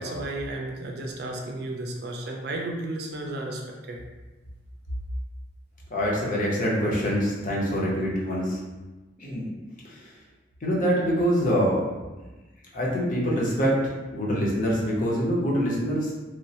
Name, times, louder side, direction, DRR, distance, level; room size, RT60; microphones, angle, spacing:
voice 1, 0.0-4.0, right 2 dB, 55° right, 1 dB, 0.4 m, -33 dB
voice 2, 5.9-8.6 9.2-9.5 9.8-10.1 10.6-11.9 12.7-16.1, equal, 45° left, -4 dB, 0.7 m, -25 dB
3.0 x 2.1 x 2.7 m, 1.2 s
head